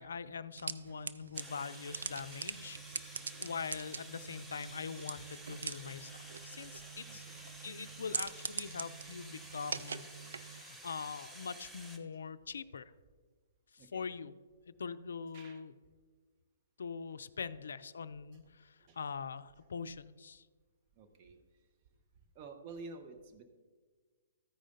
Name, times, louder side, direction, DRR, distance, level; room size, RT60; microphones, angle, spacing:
voice 1, 0.0-7.2 7.6-12.9 13.7-14.3 14.7-15.7 16.8-20.5, left 5 dB, 70° left, 14 dB, 0.4 m, -43 dB
sound 1, 0.5-10.6, right 5 dB, 70° right, 0.4 m, -44 dB
sound 2, 1.3-12.0, right 1 dB, 5° right, 0.8 m, -52 dB
voice 2, 7.0-7.5 7.9-8.0 13.8-14.1 15.3-15.6 18.8-19.0 20.9-21.7 22.3-23.4, right 3 dB, 35° right, 6 dB, 1.0 m, -51 dB
14.0 x 5.0 x 3.9 m, 1.4 s
figure-of-eight pair, 125°, 0 cm